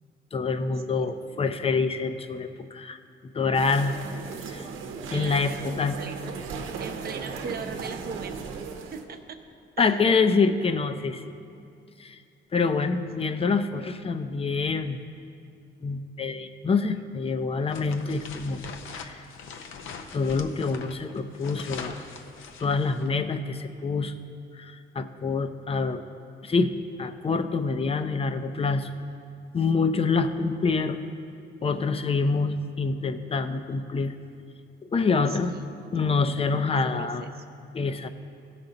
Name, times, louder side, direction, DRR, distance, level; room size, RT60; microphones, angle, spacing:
voice 1, 0.3-3.0 3.3-3.9 4.5-4.7 5.1-6.0 9.8-11.2 12.0-12.2 12.5-15.0 15.8-18.6 18.9-19.3 20.1-22.0 22.6-24.1 24.5-26.0 26.4-26.7 27.0-28.9 29.5-31.0 31.6-34.1 34.8-35.5 35.9-37.2 37.7-38.1, left 4 dB, 30° left, 10 dB, 0.6 m, -26 dB
voice 2, 0.9-1.4 5.1-6.3 6.8-9.4 9.8-10.1 35.3-37.4, right 5 dB, 50° right, 6 dB, 0.8 m, -40 dB
sound 1, 3.5-9.0, right 5 dB, 85° right, 0.9 m, -37 dB
sound 2, 17.7-23.2, left 5 dB, 85° left, 0.7 m, -42 dB
15.5 x 5.9 x 3.9 m, 2.4 s
cardioid pair, 90°, 20 cm